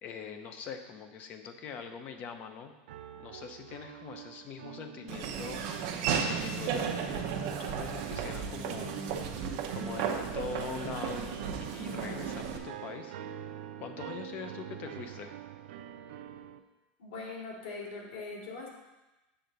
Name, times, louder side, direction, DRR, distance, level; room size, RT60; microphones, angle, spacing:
voice 1, 0.0-2.7 3.1-5.6 6.3-8.9 9.7-13.2 13.8-15.4, left 6 dB, 25° left, 7 dB, 0.6 m, -43 dB
sound 1, 2.9-16.6, right 10 dB, 70° right, 0.5 m, -46 dB
Laughter / Walk footsteps, 5.1-12.6, right 6 dB, 45° right, 0.8 m, -34 dB
voice 2, 17.0-18.7, left 3 dB, 90° left, -3 dB, 2.6 m, -41 dB
7.8 x 3.8 x 6.7 m, 1.0 s
supercardioid pair, 175°, 6 cm